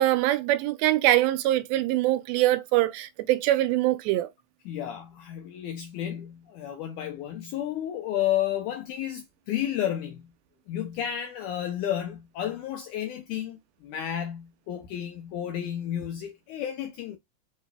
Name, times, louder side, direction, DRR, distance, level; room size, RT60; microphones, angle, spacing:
voice 1, 0.0-4.3, right 15 dB, 85° right, 2.4 m, -23 dB
voice 2, 4.7-10.3 10.7-17.2, left 11 dB, 80° left, 1.8 m, -32 dB
6.4 x 2.7 x 2.2 m
omnidirectional pair, 4.2 m